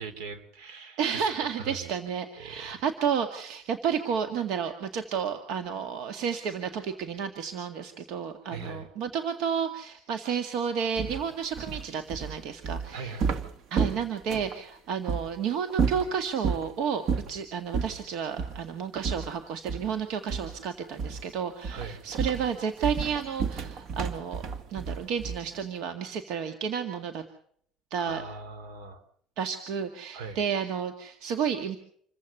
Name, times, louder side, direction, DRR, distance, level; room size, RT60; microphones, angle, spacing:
voice 1, 0.0-1.3 1.5-1.9 2.4-2.8 8.4-8.9 12.9-13.3 21.7-22.0 28.1-29.0 30.1-30.4, right 4 dB, 85° right, 12 dB, 3.6 m, -40 dB
voice 2, 1.0-13.2 13.7-24.4 24.7-27.2 27.9-28.2 29.4-31.8, right 7 dB, 70° right, 7 dB, 2.1 m, -31 dB
sound 1, 11.0-14.6 15.1-15.3 15.7-16.7 17.1-17.4 17.7-18.0 18.4-18.6 19.0-20.0 20.3-20.6 21.0-21.3 21.6-25.6, right 5 dB, 55° right, 2.0 m, -31 dB
27.5 x 15.0 x 6.9 m, 0.63 s
cardioid pair, 125°, 0 cm